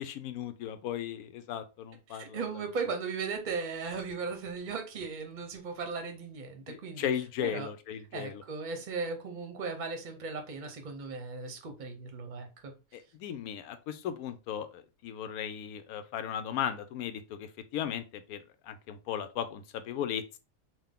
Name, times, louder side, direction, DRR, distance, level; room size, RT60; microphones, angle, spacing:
voice 1, 0.0-2.4 6.7-8.4 12.9-20.4, left 9 dB, 90° left, 10 dB, 1.1 m, -36 dB
voice 2, 2.1-7.1 7.4-7.7 8.1-12.7, right 4 dB, 40° right, 5 dB, 0.8 m, -37 dB
3.8 x 2.4 x 3.5 m, 0.29 s
omnidirectional pair, 1.5 m